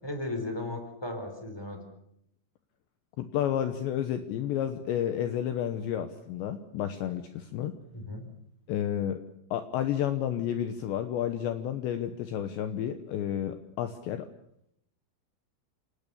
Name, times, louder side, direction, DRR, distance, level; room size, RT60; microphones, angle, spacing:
voice 1, 0.0-1.8 7.9-8.3, left 2 dB, 5° left, 5 dB, 3.4 m, -36 dB
voice 2, 3.2-7.8 8.7-9.2 9.5-14.3, left 10 dB, 70° left, 9 dB, 2.9 m, -31 dB
29.0 x 18.0 x 7.0 m, 0.76 s
omnidirectional pair, 6.0 m